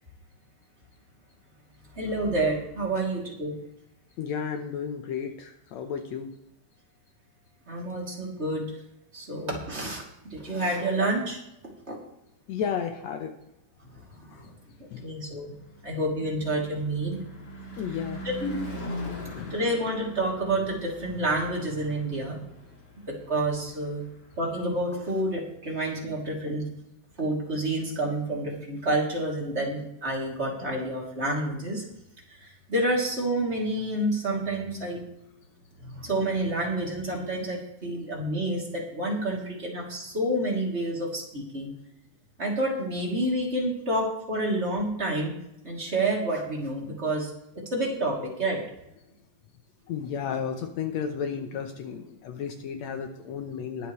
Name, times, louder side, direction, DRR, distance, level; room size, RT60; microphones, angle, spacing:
voice 1, 2.0-3.5 7.7-8.7 9.1-11.4 11.9-12.0 13.9-14.3 15.0-15.5 15.8-17.2 18.2-18.6 19.5-22.4 23.1-24.1 24.4-26.6 27.2-31.8 32.4-35.0 35.8-41.7 42.4-45.3 45.6-47.3 47.7-48.6, right 1 dB, 20° right, -2 dB, 2.8 m, -29 dB
voice 2, 4.2-6.4 12.5-13.3 14.2-14.5 14.9-15.1 17.8-18.2 19.2-19.5 49.9-53.9, left 7 dB, 70° left, 6 dB, 2.0 m, -33 dB
Car passing by / Truck / Engine, 14.7-24.9, equal, 50° left, 3.6 m, -42 dB
21.5 x 8.0 x 3.1 m, 0.85 s
omnidirectional pair, 3.4 m